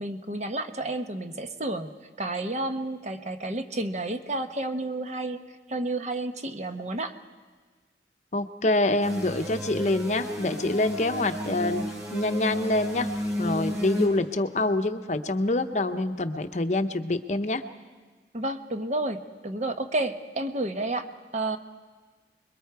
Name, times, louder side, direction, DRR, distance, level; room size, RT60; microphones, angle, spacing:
voice 1, 0.0-1.9 2.2-5.4 5.7-7.1 18.3-21.6, right 2 dB, 40° right, 7 dB, 0.9 m, -31 dB
voice 2, 8.3-11.8 12.1-13.1 13.4-17.6, left 2 dB, 40° left, 8 dB, 0.7 m, -26 dB
sound 1, 9.0-14.1, equal, 15° right, 6.0 m, -33 dB
30.0 x 22.0 x 4.7 m, 1.4 s
head